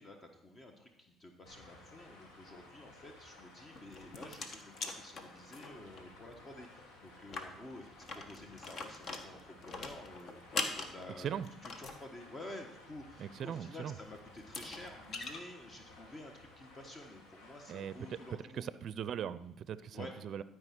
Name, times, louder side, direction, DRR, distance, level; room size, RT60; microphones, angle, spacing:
voice 1, 0.0-11.3 11.6-18.7 19.9-20.1, left 1 dB, 35° left, 4 dB, 1.2 m, -51 dB
sound 1, 1.4-18.4, left 2 dB, 85° left, 1.9 m, -57 dB
sound 2, 3.7-6.0 6.3-6.4 6.7-6.8 7.2-12.0 13.8-13.9 14.4-15.4, left 3 dB, 55° left, 1.3 m, -42 dB
voice 2, 13.2-14.0 17.7-18.2 18.5-20.4, right 9 dB, 60° right, 16 dB, 0.4 m, -40 dB
12.5 x 4.8 x 5.9 m, 0.86 s
supercardioid pair, 75°, 0 cm